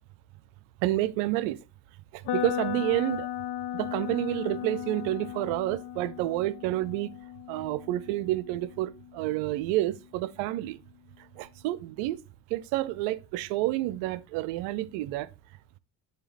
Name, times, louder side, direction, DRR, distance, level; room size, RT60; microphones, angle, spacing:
voice 1, 0.8-1.6 2.1-3.3 3.7-7.1 7.5-10.8 11.4-12.2 12.5-15.3, right 16 dB, 80° right, 0.7 m, -29 dB
sound 1, 2.3-10.2, left 11 dB, 50° left, 0.6 m, -37 dB
7.0 x 2.9 x 5.0 m
hypercardioid pair, 60°, 48 cm